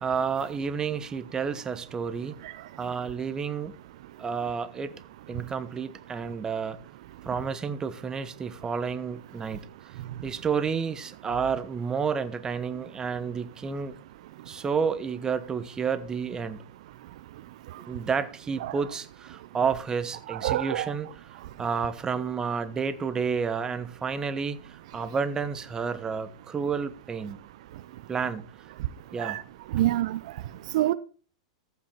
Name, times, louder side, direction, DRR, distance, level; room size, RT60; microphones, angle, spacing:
voice 1, 0.0-2.4 2.8-3.7 4.2-4.9 5.3-6.8 7.2-9.7 10.2-13.9 14.5-16.6 17.8-21.1 21.6-27.4 28.1-28.5 29.1-29.4, right 6 dB, 20° right, 1.1 m, -30 dB
voice 2, 20.3-20.9 29.2-29.4 29.7-30.2 30.7-30.9, right 14 dB, 60° right, 0.6 m, -26 dB
14.5 x 5.5 x 4.5 m
hypercardioid pair, 115°, 4 cm